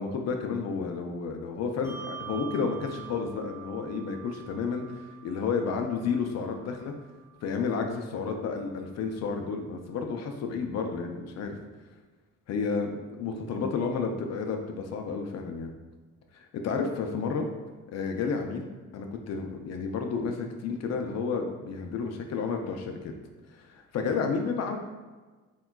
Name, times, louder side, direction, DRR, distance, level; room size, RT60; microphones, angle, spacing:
voice 1, 0.0-6.9 7.4-11.6 12.5-15.7 16.3-17.5 17.9-23.1 23.5-24.8, left 5 dB, 60° left, 4 dB, 0.5 m, -31 dB
Bell, 1.8-8.7, right 10 dB, 10° right, 0.3 m, -47 dB
3.6 x 2.2 x 2.2 m, 1.3 s
cardioid pair, 90°, 30 cm